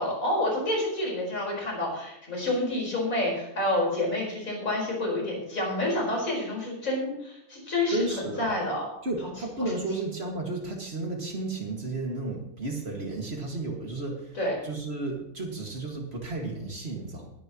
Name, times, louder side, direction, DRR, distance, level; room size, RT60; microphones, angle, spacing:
voice 1, 0.0-8.9 9.2-9.3 9.6-9.8 14.4-14.6, left 1 dB, 70° left, -2 dB, 5.3 m, -28 dB
voice 2, 7.9-8.5 9.0-14.3 14.6-17.3, right 2 dB, 45° right, 0 dB, 2.3 m, -33 dB
19.5 x 10.0 x 3.0 m, 0.80 s
omnidirectional pair, 1.5 m